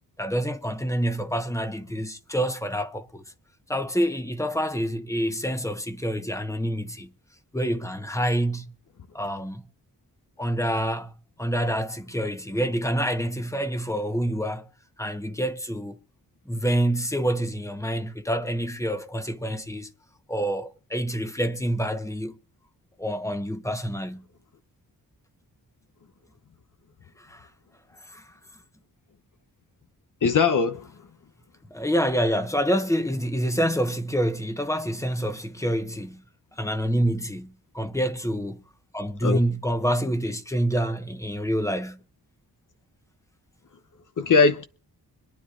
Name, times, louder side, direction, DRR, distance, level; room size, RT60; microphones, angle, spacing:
voice 1, 0.2-3.2 3.7-7.1 7.5-8.7 9.1-9.6 10.4-11.1 11.4-14.7 15.0-16.0 16.5-19.9 20.3-22.4 23.0-24.2 27.2-27.5 28.1-28.3 31.7-36.2 36.6-38.6 38.9-42.0, equal, 10° left, 1.2 m, -27 dB
voice 2, 30.2-30.9 39.2-39.4 44.2-44.6, left 5 dB, 55° left, 0.9 m, -20 dB
25.5 x 9.9 x 2.6 m
wide cardioid pair, 110°, 36 cm